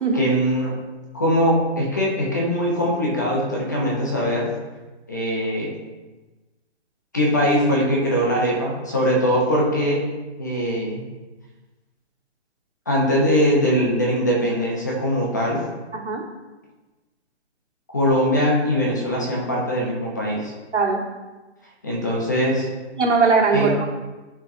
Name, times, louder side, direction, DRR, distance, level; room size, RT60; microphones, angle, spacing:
voice 1, 0.1-0.7 1.1-4.5 5.1-5.7 7.1-10.0 10.4-11.0 12.9-15.6 17.9-20.5 21.8-22.7 23.5-23.7, equal, 15° left, -3 dB, 0.7 m, -21 dB
voice 2, 15.9-16.2 20.7-21.0 23.0-23.9, right 4 dB, 85° right, -1 dB, 1.9 m, -20 dB
11.0 x 4.9 x 2.7 m, 1.2 s
hypercardioid pair, 175°, 34 cm